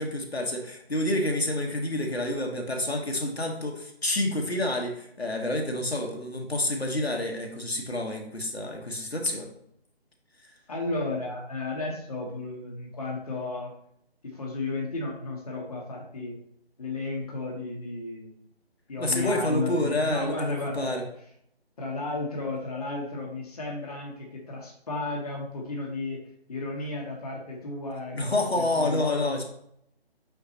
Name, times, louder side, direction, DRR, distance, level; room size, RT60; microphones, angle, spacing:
voice 1, 0.0-9.5 19.0-21.0 28.1-29.4, left 1 dB, 75° left, 2 dB, 1.5 m, -28 dB
voice 2, 10.7-13.7 14.2-16.4 16.8-18.4 18.9-21.0 21.8-26.2 26.5-29.4, left 3 dB, 35° left, -1 dB, 1.3 m, -33 dB
5.8 x 5.8 x 3.0 m, 0.72 s
figure-of-eight pair, 155°, 32 cm